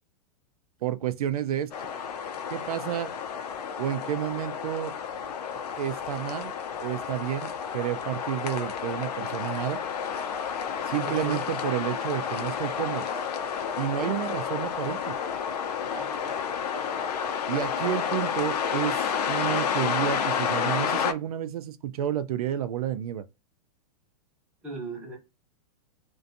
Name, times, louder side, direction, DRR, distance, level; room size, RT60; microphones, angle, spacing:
voice 1, 0.8-1.7 2.5-3.1 3.8-4.9 5.5-6.5 6.8-9.8 10.8-13.1 13.8-15.1 17.5-23.3, right 11 dB, 70° right, 0.4 m, -30 dB
sound 1, 1.7-21.1, left 7 dB, 90° left, 0.5 m, -30 dB
voice 2, 11.0-11.4 14.0-14.2 15.9-16.3 24.6-25.2, right 3 dB, 5° right, 0.5 m, -38 dB
2.5 x 2.2 x 2.6 m
supercardioid pair, 180°, 20 cm